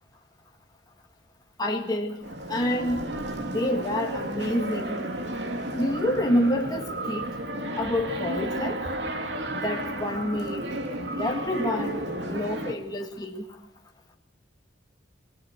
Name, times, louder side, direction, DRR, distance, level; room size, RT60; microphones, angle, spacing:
voice 1, 1.6-2.2 2.5-3.1 3.5-5.0 5.7-7.3 7.8-8.8 9.5-10.7 10.9-13.4, left 1 dB, 20° left, 1 dB, 1.9 m, -28 dB
sound 1, 2.2-12.7, right 1 dB, 65° right, 3.0 m, -32 dB
23.5 x 20.5 x 6.5 m, 0.78 s
head